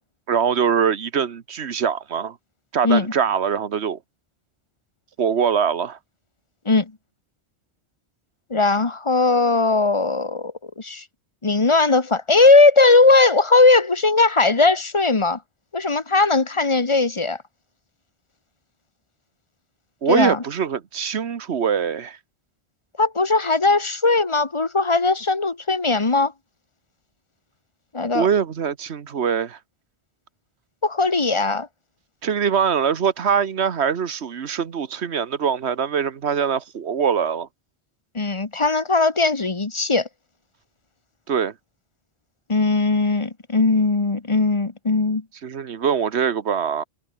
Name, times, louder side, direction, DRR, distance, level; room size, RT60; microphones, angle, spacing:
voice 1, 0.3-2.4 2.7-4.0 5.2-6.0 20.0-22.2 28.1-29.6 32.2-37.5 41.3-41.5 45.4-46.8, right 7 dB, 85° right, 1.4 m, -23 dB
voice 2, 8.5-11.0 11.4-15.4 15.7-17.4 20.1-20.4 23.0-26.3 27.9-28.3 30.8-31.7 38.1-40.1 42.5-45.2, left 3 dB, 30° left, 1.2 m, -18 dB
omnidirectional pair, 1.1 m